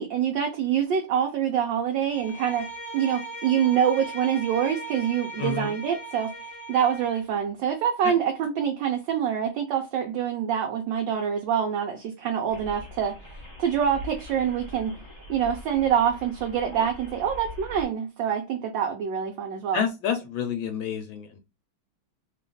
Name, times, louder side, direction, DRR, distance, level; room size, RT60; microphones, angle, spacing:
voice 1, 0.0-2.7 2.9-6.3 6.7-13.2 13.6-14.9 15.3-19.8, right 8 dB, 70° right, 1.2 m, -25 dB
Bowed string instrument, 2.1-7.3, right 1 dB, 40° left, 0.7 m, -39 dB
voice 2, 5.4-5.7 8.0-8.1 19.7-21.4, left 7 dB, 75° left, 1.3 m, -29 dB
sound 1, 12.5-17.9, left 1 dB, 15° left, 1.0 m, -42 dB
3.3 x 2.4 x 3.7 m
omnidirectional pair, 2.3 m